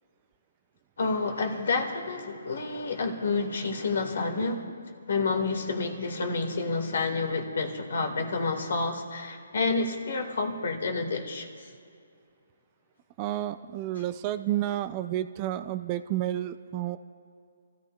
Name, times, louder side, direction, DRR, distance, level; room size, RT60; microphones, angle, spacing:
voice 1, 1.0-4.7 5.1-11.5, left 3 dB, 70° left, 5 dB, 1.9 m, -29 dB
voice 2, 13.2-17.0, right 13 dB, 30° right, 12 dB, 0.4 m, -30 dB
28.5 x 14.0 x 2.4 m, 2.3 s
hypercardioid pair, 155°, 0 cm